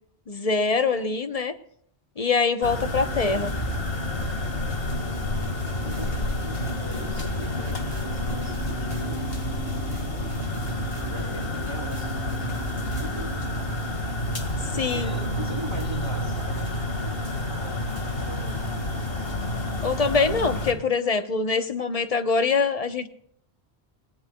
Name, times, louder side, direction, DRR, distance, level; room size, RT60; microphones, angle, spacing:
voice 1, 0.3-1.5 2.2-3.5 14.7-15.1 19.8-23.1, left 4 dB, 35° left, 9 dB, 1.0 m, -24 dB
sound 1, 2.6-20.7, left 1 dB, 65° left, 2.1 m, -29 dB
voice 2, 3.1-3.7 5.8-9.3 11.0-13.6 14.7-17.3 17.6-18.9, right 1 dB, 25° right, 1 dB, 1.7 m, -41 dB
sound 2, 5.4-13.4, equal, 70° right, 4.5 m, -44 dB
29.0 x 18.5 x 2.3 m, 0.66 s
omnidirectional pair, 1.1 m